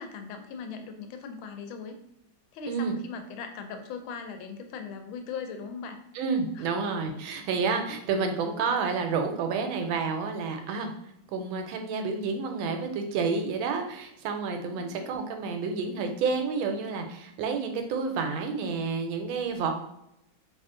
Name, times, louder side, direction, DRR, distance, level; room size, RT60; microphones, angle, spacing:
voice 1, 0.0-2.0 2.5-6.0 6.5-6.7 14.7-15.0, left 5 dB, 90° left, 6 dB, 1.4 m, -39 dB
voice 2, 6.1-10.9 11.3-19.7, right 5 dB, 90° right, 5 dB, 1.4 m, -29 dB
3.4 x 2.4 x 3.7 m, 0.80 s
omnidirectional pair, 2.1 m